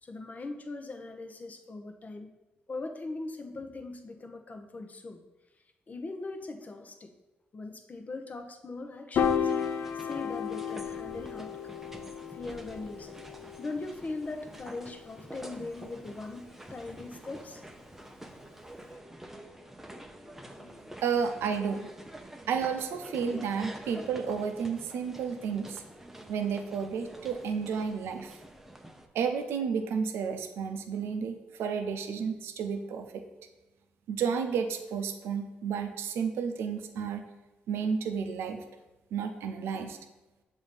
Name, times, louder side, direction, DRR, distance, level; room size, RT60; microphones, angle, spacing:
voice 1, 0.0-2.3 2.7-5.2 5.9-7.1 7.5-9.5 9.9-11.8 12.3-13.1 13.6-17.6 18.9-19.0 20.2-21.0 23.0-23.4, left 3 dB, 40° left, 6 dB, 0.7 m, -40 dB
sound 1, 9.1-29.1, right 1 dB, 5° right, 0.6 m, -48 dB
Piano, 9.2-15.5, left 7 dB, 75° left, 0.4 m, -34 dB
voice 2, 21.0-21.9 22.5-25.8 26.3-28.4 29.1-33.2 34.1-37.3 37.7-38.6 39.1-40.0, right 6 dB, 85° right, 7 dB, 0.5 m, -32 dB
7.1 x 2.7 x 5.1 m, 1.1 s
cardioid pair, 70°, 4 cm